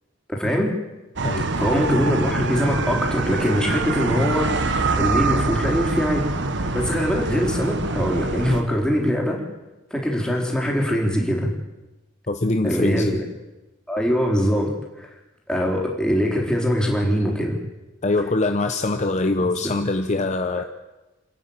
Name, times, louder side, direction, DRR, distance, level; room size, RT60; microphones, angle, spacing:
voice 1, 0.3-0.7 1.6-4.7 5.0-6.3 6.5-9.4 9.9-11.5 12.6-13.2 13.9-14.7 15.0-15.1 15.5-17.6 19.4-19.5 20.5-20.6, equal, 5° left, -1 dB, 4.1 m, -22 dB
sound 1, 1.2-8.6, right 3 dB, 65° right, 1.4 m, -25 dB
voice 2, 12.3-13.2 18.0-20.6, left 2 dB, 35° left, 7 dB, 0.9 m, -23 dB
28.5 x 10.0 x 8.9 m, 1.0 s
head